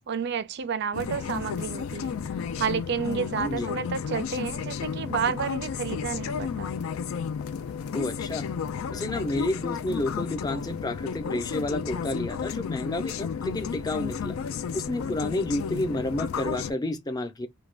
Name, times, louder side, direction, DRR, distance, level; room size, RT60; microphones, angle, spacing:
voice 1, 0.1-2.2 2.6-6.7, right 6 dB, 55° right, 0.4 m, -30 dB
sound 1, 0.9-16.7, left 6 dB, 80° left, 0.4 m, -32 dB
voice 2, 7.9-8.5 8.9-14.4 14.7-17.5, left 1 dB, 20° left, 0.5 m, -30 dB
2.3 x 2.2 x 3.2 m
head